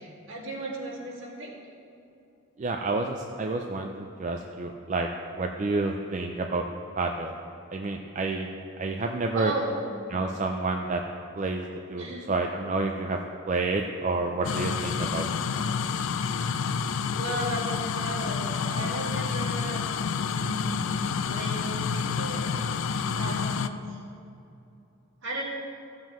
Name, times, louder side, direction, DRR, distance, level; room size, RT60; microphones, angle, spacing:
voice 1, 0.0-1.6 9.3-9.8 12.0-12.3 17.1-19.9 20.3-21.0 21.2-22.5 23.1-24.0 25.2-25.4, right 1 dB, 65° right, -4 dB, 2.0 m, -35 dB
voice 2, 2.6-5.1 5.3-6.6 7.0-7.3 7.7-8.5 8.8-9.5 10.1-11.0 11.4-13.2 13.5-15.3, right 3 dB, 35° right, 2 dB, 0.4 m, -29 dB
sound 1, 14.4-23.7, left 6 dB, 70° left, 0.3 m, -29 dB
14.0 x 7.4 x 3.0 m, 2.7 s
head